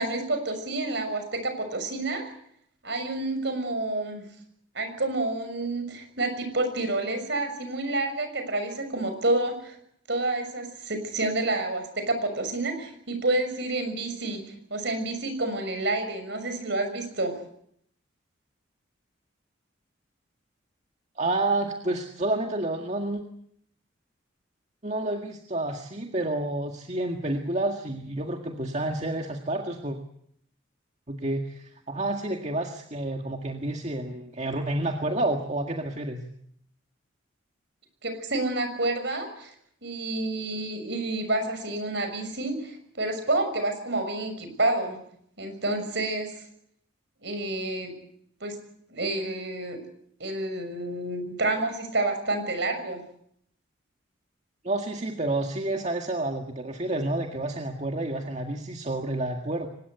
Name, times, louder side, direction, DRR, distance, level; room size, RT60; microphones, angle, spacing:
voice 1, 0.0-2.3 2.8-4.2 4.7-9.7 10.1-14.4 14.7-17.3 38.0-39.5 39.8-45.0 45.4-46.3 47.2-47.9 48.4-48.5 48.9-49.8 50.2-53.0, right 2 dB, 60° right, 7 dB, 6.3 m, -29 dB
voice 2, 21.2-23.2 24.8-30.0 31.1-36.2 54.6-59.7, right 2 dB, 35° right, 3 dB, 1.9 m, -29 dB
24.0 x 20.0 x 8.1 m, 0.69 s
head